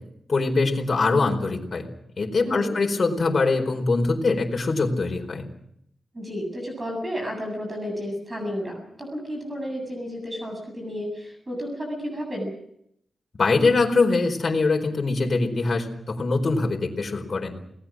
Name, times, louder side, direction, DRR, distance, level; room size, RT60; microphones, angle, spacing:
voice 1, 0.3-1.9 2.2-5.4 13.4-17.5, left 3 dB, 45° left, 2 dB, 4.6 m, -23 dB
voice 2, 6.1-12.5, equal, 20° right, 2 dB, 7.6 m, -32 dB
29.0 x 19.5 x 6.3 m, 0.74 s
wide cardioid pair, 115°, 0 cm